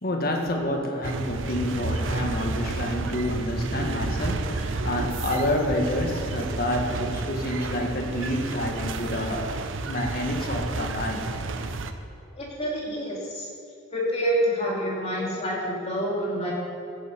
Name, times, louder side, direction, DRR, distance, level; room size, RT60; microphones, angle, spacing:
voice 1, 0.0-9.5 9.9-11.2, left 1 dB, 50° left, 2 dB, 1.6 m, -28 dB
sound 1, 1.0-11.9, right 3 dB, 70° right, 0.7 m, -31 dB
voice 2, 12.4-13.5 13.9-16.5, equal, 35° left, -4 dB, 2.5 m, -27 dB
16.0 x 7.2 x 5.1 m, 2.5 s
head